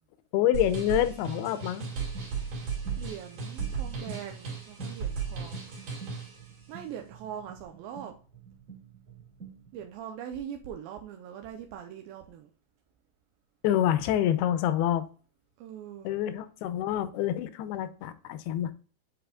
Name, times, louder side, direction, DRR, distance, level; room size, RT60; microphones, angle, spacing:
voice 1, 0.3-1.9 13.6-15.0 16.0-18.7, left 11 dB, 80° left, 2.4 m, -27 dB
sound 1, 0.5-6.4, right 5 dB, 60° right, 4.2 m, -35 dB
sound 2, 2.1-9.9, right 7 dB, 40° right, 2.8 m, -49 dB
voice 2, 3.0-5.6 6.7-8.1 9.7-12.5 15.6-16.1, right 9 dB, 85° right, 2.2 m, -41 dB
10.0 x 4.3 x 2.3 m
omnidirectional pair, 4.9 m